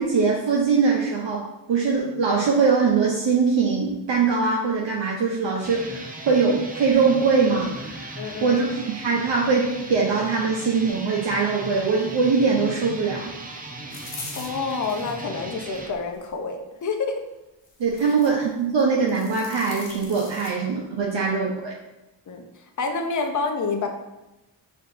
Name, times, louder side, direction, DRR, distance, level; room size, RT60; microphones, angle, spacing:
voice 1, 0.0-13.3 17.8-21.7, right 5 dB, 70° right, -2 dB, 0.6 m, -22 dB
sound 1, 5.5-15.9, right 2 dB, 20° right, 0.5 m, -38 dB
voice 2, 8.2-8.6 14.4-17.2 18.0-18.2 22.3-22.4 22.8-23.9, left 4 dB, 40° left, 4 dB, 0.6 m, -28 dB
sound 2, 13.9-15.1 15.7-16.3 17.6-18.4 18.8-20.5, left 3 dB, 70° left, 0.9 m, -41 dB
4.5 x 2.6 x 2.5 m, 0.97 s
cardioid pair, 45°, 45 cm